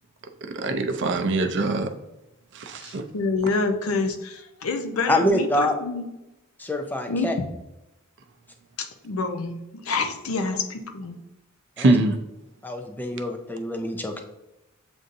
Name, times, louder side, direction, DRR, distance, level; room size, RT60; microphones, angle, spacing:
voice 1, 0.5-1.9 2.5-3.0 11.8-12.2, right 2 dB, 55° right, 0.5 m, -23 dB
voice 2, 2.8-6.1 7.1-7.3 8.8-11.2, left 3 dB, 85° left, 0.6 m, -28 dB
voice 3, 5.1-5.8 6.6-7.3 11.8-11.9 12.6-14.2, left 1 dB, 10° left, 0.4 m, -25 dB
7.8 x 2.6 x 2.6 m
head